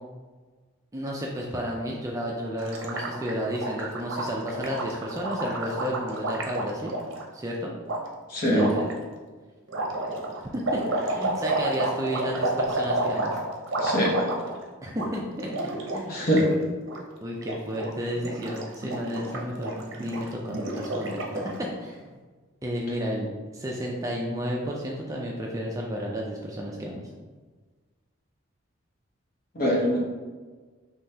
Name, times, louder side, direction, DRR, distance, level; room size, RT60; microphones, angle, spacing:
voice 1, 0.9-6.9 7.3-7.7 8.5-8.9 10.5-13.3 14.8-15.5 15.9-16.2 17.2-19.7 20.0-22.2 22.6-27.0, equal, 15° right, -2 dB, 0.4 m, -32 dB
Gurgling, 2.6-7.2 7.9-8.0 8.5-8.9 9.7-14.6 14.9-15.1 15.4-16.5 16.8-17.0 17.4-17.9 18.2-21.6, right 2 dB, 60° right, 0.7 m, -30 dB
voice 2, 8.3-8.7 13.8-14.3 16.1-16.5 29.5-30.0, equal, 45° left, -3 dB, 1.0 m, -23 dB
5.4 x 3.1 x 2.8 m, 1.4 s
head